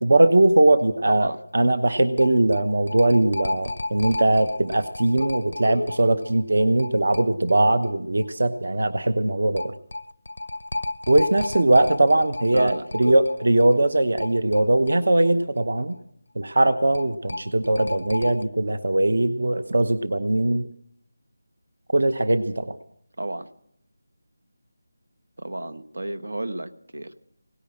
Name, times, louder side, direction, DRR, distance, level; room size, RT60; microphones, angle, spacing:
voice 1, 0.0-9.7 11.1-16.0 16.4-20.7 21.9-22.8, right 1 dB, 65° right, 11 dB, 0.9 m, -20 dB
sound 1, 0.8-0.9 1.2-1.3 2.2-7.9 8.2-8.3 9.6-15.7 16.0-16.1 16.9-18.4, left 2 dB, 85° left, 0.5 m, -33 dB
voice 2, 1.1-1.4 12.5-12.9 23.2-23.5 25.4-27.1, right 1 dB, 85° right, 10 dB, 1.2 m, -31 dB
17.5 x 10.0 x 7.6 m, 0.70 s
figure-of-eight pair, 175°, 0 cm